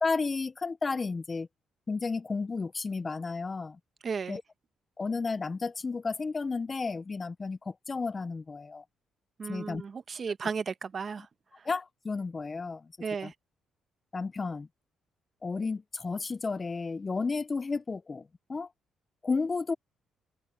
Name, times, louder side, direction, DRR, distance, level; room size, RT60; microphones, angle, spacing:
voice 1, 0.0-1.5 1.9-3.8 4.3-4.4 5.0-8.8 9.5-9.8 10.4-10.5 11.6-12.9 13.2-13.3 14.1-14.7 15.4-18.7 19.2-19.7, left 4 dB, 30° left, 0.4 m, -32 dB
voice 2, 4.0-4.4 9.4-11.2 13.0-13.3, right 5 dB, 45° right, 1.1 m, -34 dB
cardioid pair, 90°, 0 cm